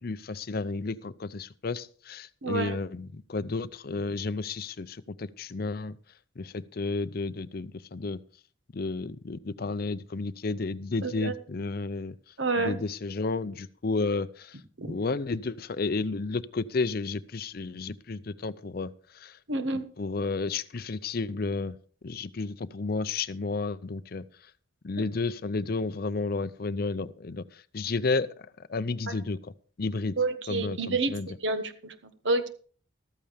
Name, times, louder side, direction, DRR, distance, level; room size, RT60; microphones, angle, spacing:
voice 1, 0.0-6.0 6.4-8.2 8.7-19.4 19.7-21.8 22.0-24.5 24.8-28.3 28.7-30.2 30.5-31.4, left 3 dB, 45° left, 16 dB, 0.5 m, -32 dB
voice 2, 2.4-2.7 11.0-11.3 12.4-12.8 14.8-14.9 19.5-19.8 30.2-31.1 31.4-31.9 32.2-32.5, right 3 dB, 65° right, 9 dB, 1.3 m, -28 dB
14.0 x 13.5 x 3.5 m, 0.44 s
head